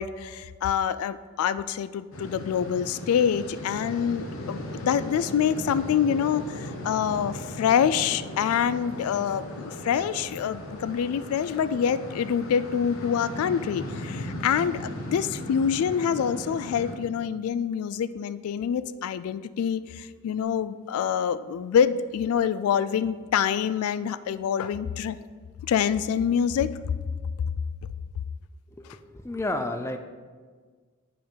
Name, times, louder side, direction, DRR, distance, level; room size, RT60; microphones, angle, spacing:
voice 1, 0.0-25.2 25.7-26.8, left 8 dB, 90° left, 17 dB, 0.3 m, -26 dB
sound 1, 2.1-16.9, left 1 dB, 70° left, 0.9 m, -37 dB
voice 2, 28.7-30.0, left 2 dB, 10° left, 6 dB, 0.4 m, -31 dB
9.3 x 5.1 x 3.8 m, 1.5 s
head